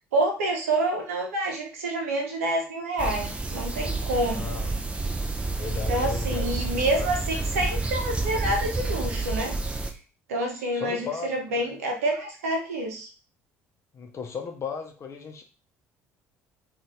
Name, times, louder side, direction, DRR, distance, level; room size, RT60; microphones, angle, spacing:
voice 1, 0.1-4.5 5.9-9.5 10.3-13.1, right 1 dB, 75° right, 2 dB, 0.8 m, -28 dB
sound 1, 3.0-9.9, right 3 dB, 15° right, 0.5 m, -29 dB
voice 2, 4.3-4.7 5.5-7.1 10.5-11.8 13.9-15.4, left 6 dB, 35° left, 3 dB, 0.7 m, -36 dB
2.6 x 2.4 x 3.1 m, 0.35 s
figure-of-eight pair, 55°, 8 cm